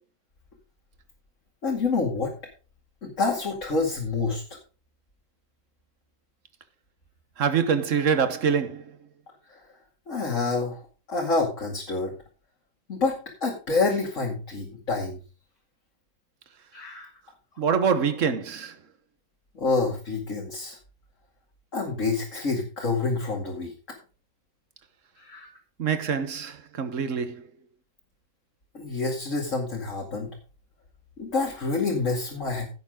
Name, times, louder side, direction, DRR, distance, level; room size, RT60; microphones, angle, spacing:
voice 1, 1.6-2.3 3.0-4.6 9.5-9.6 10.1-10.8 11.1-12.1 12.9-15.2 16.7-17.1 19.5-20.8 21.7-24.0 25.2-25.5 28.7-30.4 31.2-32.7, left 3 dB, 45° left, 2.6 m, -27 dB
voice 2, 7.4-9.0 17.6-18.7 25.8-27.4, right 6 dB, 50° right, 1.5 m, -25 dB
16.0 x 7.0 x 3.8 m
omnidirectional pair, 1.8 m